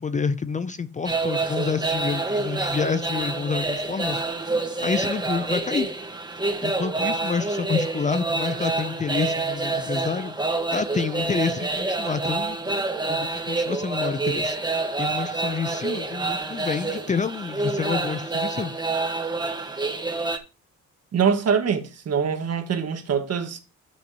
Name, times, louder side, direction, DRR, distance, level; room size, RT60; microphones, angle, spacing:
voice 1, 0.0-5.9 6.6-12.8 13.1-18.7, left 5 dB, 25° left, 0.5 m, -28 dB
sound 1, 1.1-20.4, right 3 dB, 15° right, 1.4 m, -27 dB
voice 2, 21.1-23.6, right 6 dB, 55° right, 1.7 m, -24 dB
12.5 x 6.1 x 3.0 m
cardioid pair, 90°, 30 cm